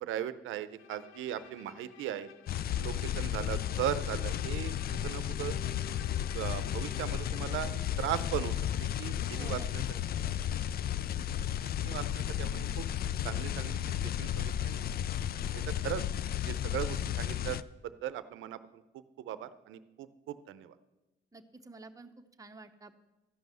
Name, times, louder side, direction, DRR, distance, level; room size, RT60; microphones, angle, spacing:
voice 1, 0.0-2.3 2.8-4.7 5.0-5.6 6.3-8.6 8.8-9.8 11.8-12.8 13.2-15.1 15.5-16.0 16.4-17.6 17.8-18.8 19.2-20.7, right 12 dB, 80° right, 14 dB, 0.6 m, -38 dB
Bowed string instrument, 0.8-7.7, left 5 dB, 90° left, 0.6 m, -52 dB
sound 1, 2.5-17.6, left 10 dB, 50° left, 0.4 m, -33 dB
voice 2, 9.3-9.7 9.9-10.4 21.3-22.1 22.4-22.9, right 3 dB, 15° right, 6 dB, 0.8 m, -50 dB
13.0 x 5.4 x 7.8 m, 1.0 s
cardioid pair, 90°, 20 cm